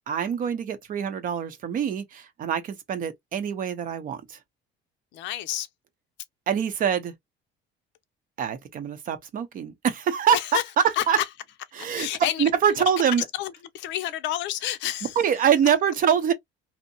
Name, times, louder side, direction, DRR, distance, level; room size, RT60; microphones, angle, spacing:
voice 1, 0.1-4.4 6.5-7.1 8.4-10.4 11.1-11.2 11.7-12.1 12.4-13.2 15.2-16.3, right 8 dB, 45° right, 0.6 m, -24 dB
voice 2, 5.1-5.7 10.3-10.6 10.9-11.3 11.9-12.4 13.3-15.2, left 13 dB, 70° left, 0.5 m, -29 dB
2.7 x 2.1 x 2.6 m
cardioid pair, 130°, 19 cm